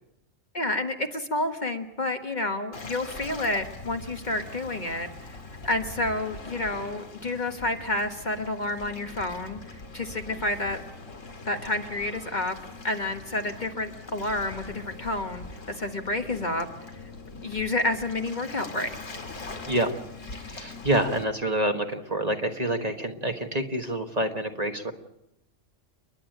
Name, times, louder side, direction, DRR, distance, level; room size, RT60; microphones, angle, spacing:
voice 1, 0.5-5.4 5.6-10.8 11.5-12.6 12.8-16.7 17.4-18.9, left 2 dB, 35° left, 5 dB, 1.4 m, -29 dB
Waves surf, 2.7-21.2, left 3 dB, 75° left, 2.6 m, -42 dB
voice 2, 20.3-24.9, right 1 dB, 30° right, 5 dB, 1.4 m, -27 dB
29.5 x 11.0 x 9.1 m, 0.90 s
omnidirectional pair, 1.3 m